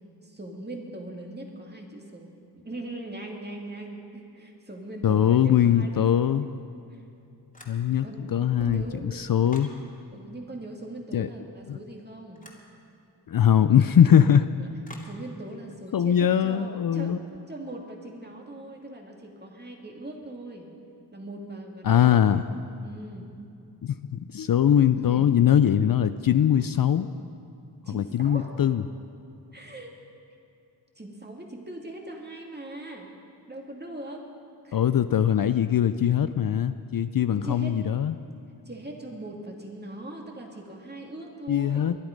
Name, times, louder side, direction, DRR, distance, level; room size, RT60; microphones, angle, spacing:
voice 1, 0.2-6.3 6.9-7.0 8.0-8.3 8.6-9.2 10.1-12.5 14.6-14.7 15.0-20.7 21.1-22.2 22.8-23.3 25.0-25.3 27.8-28.5 29.5-29.9 31.0-33.1 33.5-34.2 34.6-34.8 37.3-37.8 38.7-41.9, right 1 dB, 25° right, 1 dB, 2.4 m, -40 dB
voice 2, 5.0-6.5 7.7-8.8 9.1-9.7 11.1-11.3 11.7-11.8 13.3-14.5 15.9-17.2 21.8-22.4 23.8-27.1 27.9-28.8 34.7-38.2 41.5-42.0, left 9 dB, 55° left, 12 dB, 0.5 m, -21 dB
sound 1, 7.5-8.1 8.5-9.8 12.4-12.7 14.8-15.2, left 1 dB, 20° left, 2.6 m, -47 dB
21.5 x 11.5 x 5.3 m, 2.6 s
cardioid pair, 70°, 42 cm